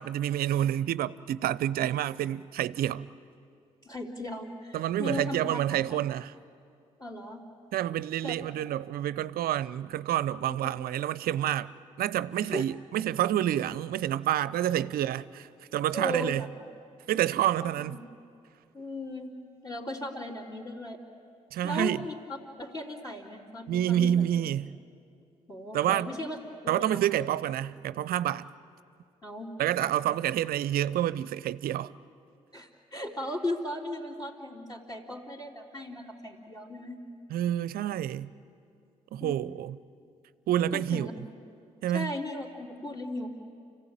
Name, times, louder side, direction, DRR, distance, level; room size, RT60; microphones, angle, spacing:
voice 1, 0.0-3.1 4.7-6.3 7.7-11.7 12.0-16.5 17.1-18.0 21.5-22.1 23.7-24.7 25.7-26.1 26.7-28.5 29.6-31.9 37.3-38.3 39.1-39.8 40.5-41.1 41.8-42.1, right 11 dB, 60° right, 0.7 m, -28 dB
voice 2, 3.8-5.6 7.0-7.4 8.2-8.3 10.4-10.7 12.4-12.6 15.9-16.5 17.6-18.0 18.7-19.3 19.6-21.0 21.6-22.1 22.6-24.2 25.5-26.4 26.6-27.0 29.2-29.5 32.5-37.0 39.2-39.4 40.7-41.1 41.9-43.3, left 1 dB, 25° left, 3.9 m, -37 dB
29.5 x 16.0 x 9.1 m
hypercardioid pair, 45°, 17 cm